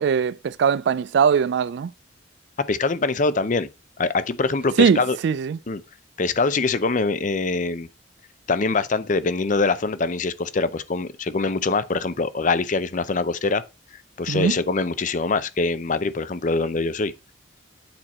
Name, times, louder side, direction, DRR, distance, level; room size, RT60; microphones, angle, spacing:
voice 1, 0.0-1.9 4.8-5.6 14.3-14.6, right 6 dB, 60° right, 0.3 m, -21 dB
voice 2, 2.7-3.7 4.0-5.2 5.7-5.8 6.2-7.9 8.5-13.6 14.2-17.1, left 3 dB, 40° left, 0.6 m, -23 dB
8.7 x 4.5 x 4.2 m
head